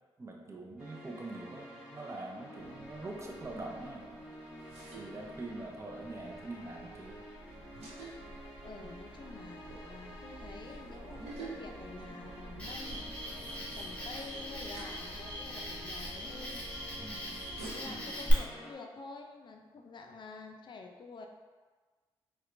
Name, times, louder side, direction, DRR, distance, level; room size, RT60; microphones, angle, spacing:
voice 1, 0.2-4.0 5.0-7.3 17.0-17.4 17.9-18.1, right 2 dB, 25° right, 1 dB, 0.6 m, -44 dB
sound 1, 0.8-18.7, equal, 10° right, 1.2 m, -50 dB
sound 2, 2.6-17.9, right 2 dB, 75° right, 0.8 m, -49 dB
voice 2, 8.6-16.7 17.7-21.3, left 4 dB, 50° left, 4 dB, 0.4 m, -49 dB
Cricket, 12.6-18.3, left 1 dB, 10° left, 1.3 m, -41 dB
4.2 x 2.2 x 2.5 m, 1.4 s
supercardioid pair, 50°, 11 cm